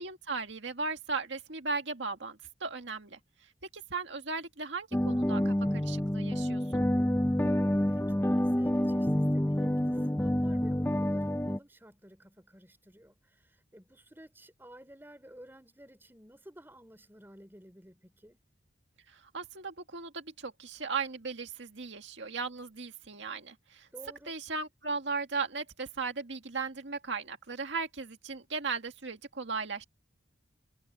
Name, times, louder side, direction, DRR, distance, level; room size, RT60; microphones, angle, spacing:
voice 1, 0.0-3.2 3.7-6.6 19.1-23.9 24.3-29.8, right 4 dB, 75° right, 1.9 m, -37 dB
sound 1, 4.9-11.6, left 1 dB, 10° left, 0.5 m, -28 dB
voice 2, 7.4-18.4 23.9-24.3, equal, 10° right, 4.2 m, -54 dB
head